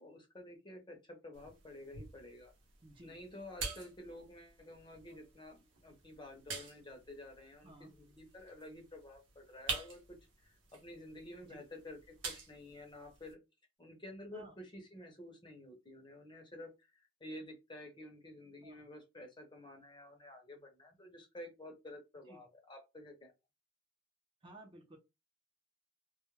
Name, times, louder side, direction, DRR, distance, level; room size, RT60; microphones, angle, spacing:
voice 1, 0.0-2.5 3.0-13.4 13.8-23.3, left 1 dB, 25° left, 0.6 m, -51 dB
sound 1, 1.3-13.3, right 4 dB, 85° right, 0.7 m, -48 dB
voice 2, 2.8-3.2 7.6-7.9 11.4-11.6 14.3-14.5 18.6-18.8 22.3-22.5 24.4-25.0, right 1 dB, 25° right, 0.5 m, -55 dB
2.2 x 2.1 x 3.0 m
head